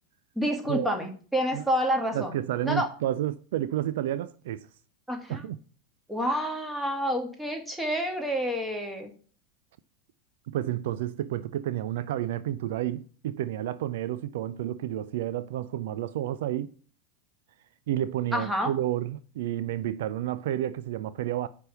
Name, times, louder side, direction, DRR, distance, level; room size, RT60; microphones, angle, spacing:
voice 1, 0.4-2.4 2.6-2.9 5.1-5.4 6.1-9.1 18.3-18.7, equal, 5° right, 1.9 m, -28 dB
voice 2, 2.1-4.7 5.3-5.6 10.5-16.7 17.9-21.5, right 12 dB, 60° right, 0.4 m, -30 dB
9.6 x 3.4 x 6.8 m
figure-of-eight pair, 85°, 0 cm